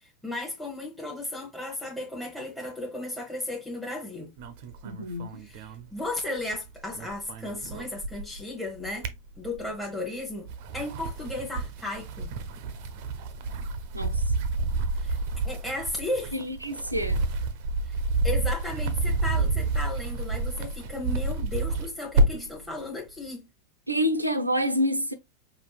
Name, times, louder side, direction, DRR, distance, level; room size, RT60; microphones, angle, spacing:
voice 1, 0.2-4.3 5.4-9.1 9.4-10.5 10.7-12.3 15.0-15.2 15.4-16.4 17.9-18.0 18.2-23.4, left 2 dB, ahead, 1.0 m, -35 dB
sound 1, 4.4-6.6 6.8-8.4 8.8-9.8 10.4-22.6, right 2 dB, 45° right, 0.6 m, -29 dB
voice 2, 4.8-5.4 13.9-14.2 16.3-17.2 23.9-25.1, equal, 85° right, 0.6 m, -27 dB
5.3 x 2.4 x 2.4 m
figure-of-eight pair, 90°, 0 cm